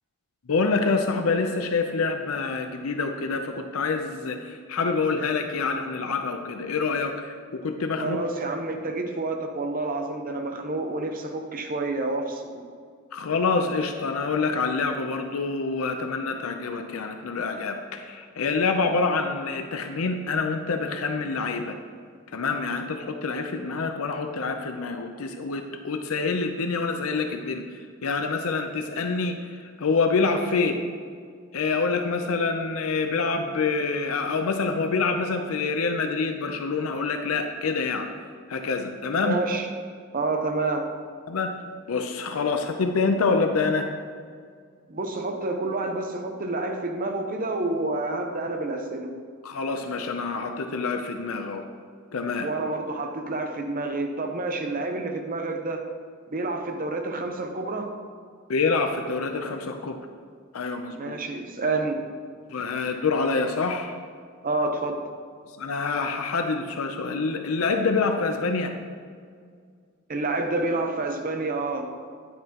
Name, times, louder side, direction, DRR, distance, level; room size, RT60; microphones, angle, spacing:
voice 1, 0.5-8.2 13.1-21.8 22.3-27.6 28.0-30.8 31.5-38.1 38.5-39.4 41.3-41.5 41.9-43.9 49.4-51.6 52.1-52.5 58.5-60.0 60.5-61.2 62.5-64.0 65.6-68.7, left 4 dB, 90° left, 5 dB, 0.6 m, -26 dB
voice 2, 8.0-12.6 39.2-39.7 40.1-40.9 44.9-49.1 52.4-55.8 56.3-57.9 60.9-62.1 64.4-65.0 70.1-71.9, right 2 dB, 40° right, 4 dB, 0.9 m, -28 dB
9.9 x 9.4 x 2.9 m, 2.1 s
head